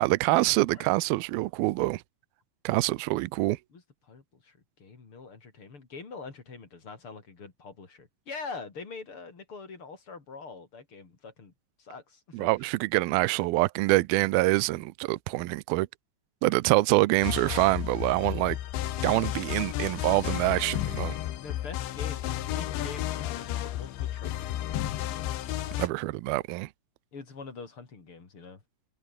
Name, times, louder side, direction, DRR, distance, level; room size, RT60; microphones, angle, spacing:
voice 1, 0.0-2.0 2.6-3.6 12.3-15.9 16.4-18.6 19.0-21.2 25.8-26.7, right 20 dB, 85° right, 2.2 m, -25 dB
voice 2, 3.7-11.5 11.8-12.5 21.4-25.3 27.1-28.6, left 4 dB, 30° left, 4.1 m, -44 dB
sound 1, 17.2-25.9, left 13 dB, 85° left, 3.9 m, -32 dB
omnidirectional pair, 5.0 m